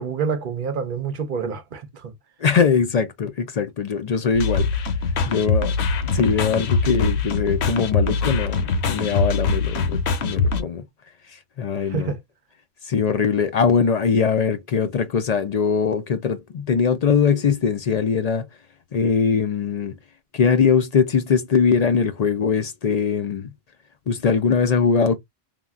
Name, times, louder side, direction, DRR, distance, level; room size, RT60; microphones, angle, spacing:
voice 1, 0.0-2.1 11.8-12.2, right 6 dB, 55° right, 0.7 m, -27 dB
voice 2, 2.4-4.7 5.3-5.7 6.0-10.8 11.6-12.1 12.9-18.5 18.9-19.9 20.3-23.5 24.1-25.2, left 6 dB, 55° left, 0.4 m, -21 dB
sound 1, 4.3-10.6, left 4 dB, 80° left, 0.9 m, -23 dB
3.3 x 2.2 x 2.4 m
omnidirectional pair, 1.1 m